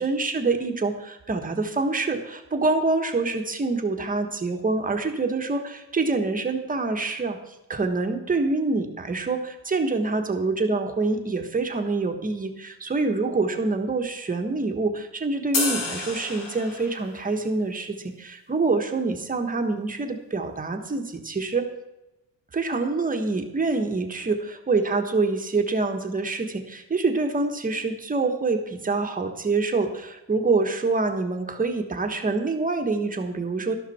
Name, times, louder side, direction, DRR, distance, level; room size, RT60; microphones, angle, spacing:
voice 1, 0.0-21.7 22.5-33.7, right 3 dB, 20° right, 6 dB, 1.4 m, -26 dB
sound 1, 15.5-17.2, left 3 dB, 60° left, 3.5 m, -29 dB
12.5 x 12.0 x 4.4 m, 0.95 s
cardioid pair, 160°, 37 cm